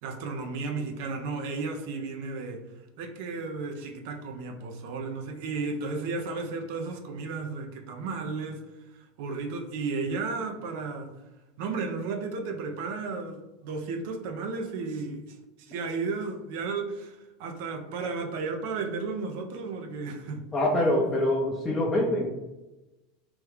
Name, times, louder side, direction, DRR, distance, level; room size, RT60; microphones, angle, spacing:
voice 1, 0.0-2.6 3.0-8.6 8.9-11.1 11.6-20.4, right 4 dB, 65° right, 5 dB, 0.5 m, -34 dB
voice 2, 20.5-22.3, left 1 dB, 15° left, -3 dB, 0.5 m, -25 dB
3.0 x 2.3 x 3.3 m, 1.0 s
supercardioid pair, 120°, 0 cm